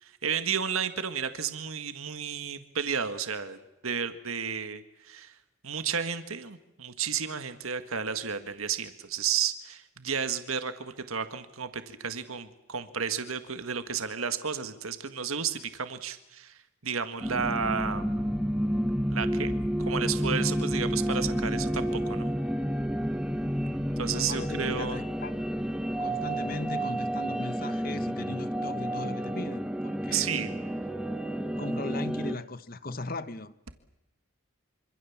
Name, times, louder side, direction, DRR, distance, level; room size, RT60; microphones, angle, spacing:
voice 1, 0.0-5.3 5.6-18.2 19.1-22.3 24.0-25.0 30.1-30.5, right 6 dB, 80° right, 1.9 m, -32 dB
sound 1, 17.2-32.3, equal, 5° right, 1.1 m, -30 dB
voice 2, 24.1-25.4 26.0-30.3 31.6-33.5, left 2 dB, 45° left, 1.2 m, -38 dB
26.5 x 26.0 x 7.4 m
head